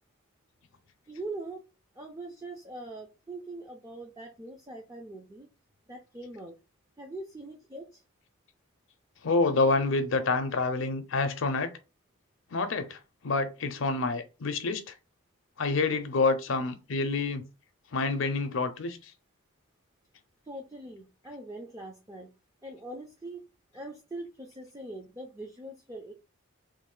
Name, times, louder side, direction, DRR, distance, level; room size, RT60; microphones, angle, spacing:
voice 1, 1.1-1.6 2.0-5.5 5.9-6.6 7.0-8.0 20.5-22.3 22.6-23.4 23.7-26.1, right 2 dB, 15° right, 0.4 m, -42 dB
voice 2, 9.2-11.7 12.5-14.9 15.6-17.4 17.9-19.1, left 3 dB, 60° left, 0.5 m, -28 dB
3.1 x 2.4 x 3.7 m
head